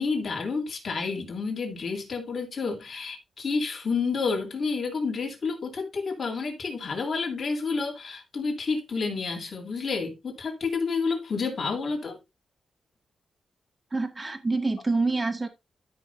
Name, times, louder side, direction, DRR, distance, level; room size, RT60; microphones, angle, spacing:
voice 1, 0.0-12.2, left 4 dB, 50° left, 3.3 m, -30 dB
voice 2, 13.9-15.5, right 3 dB, 25° right, 1.8 m, -26 dB
13.0 x 5.9 x 2.7 m
cardioid pair, 85°, 0 cm